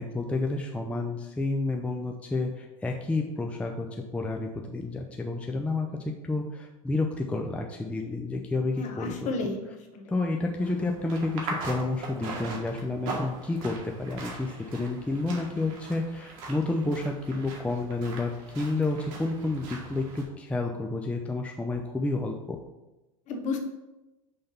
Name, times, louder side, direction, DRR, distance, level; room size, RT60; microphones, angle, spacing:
voice 1, 0.0-3.9 4.1-5.9 6.2-9.3 10.1-22.6, left 2 dB, 5° left, 1 dB, 0.5 m, -30 dB
voice 2, 8.8-10.1 23.3-23.6, left 3 dB, 40° left, 4 dB, 1.1 m, -33 dB
sound 1, 10.6-20.2, right 3 dB, 65° right, 1.7 m, -40 dB
5.7 x 3.4 x 5.5 m, 1.0 s
supercardioid pair, 115°, 18 cm